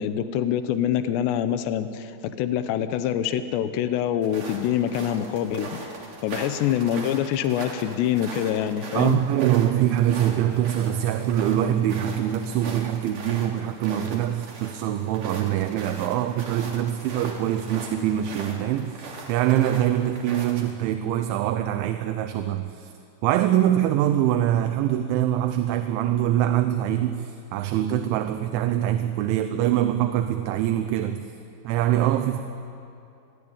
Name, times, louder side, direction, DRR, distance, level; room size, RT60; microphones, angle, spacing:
voice 1, 0.0-5.9 6.2-9.2, left 10 dB, 70° left, 10 dB, 3.1 m, -25 dB
sound 1, 4.2-20.7, right 3 dB, 45° right, 4.2 m, -40 dB
voice 2, 8.9-22.9 23.2-31.3 31.6-32.4, right 11 dB, 80° right, 8 dB, 3.2 m, -24 dB
29.5 x 21.5 x 8.9 m, 2.7 s
omnidirectional pair, 5.5 m